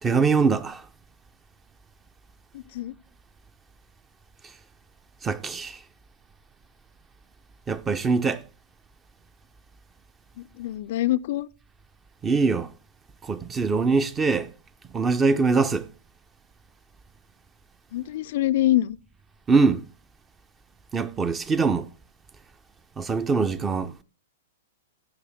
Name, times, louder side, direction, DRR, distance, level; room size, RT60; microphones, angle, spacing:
voice 1, 0.0-0.9 5.2-5.8 7.7-8.4 12.2-12.7 13.2-14.5 14.9-15.9 19.5-19.9 20.9-21.9 23.0-24.0, right 4 dB, 15° right, 0.6 m, -23 dB
voice 2, 10.6-11.5 17.9-19.0, left 14 dB, 55° left, 0.4 m, -24 dB
15.5 x 6.3 x 3.5 m
figure-of-eight pair, 105°, 0 cm